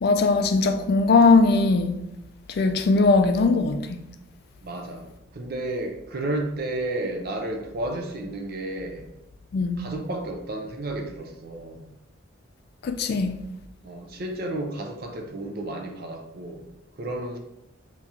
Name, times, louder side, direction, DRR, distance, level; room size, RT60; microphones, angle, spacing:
voice 1, 0.0-2.0 2.5-4.0 9.5-9.9 12.8-13.4, left 3 dB, 50° left, 0.3 m, -20 dB
voice 2, 4.6-5.1 5.3-9.0 9.8-11.8 13.8-16.6 17.0-17.4, right 1 dB, 45° right, 0.5 m, -32 dB
2.9 x 2.9 x 3.5 m
head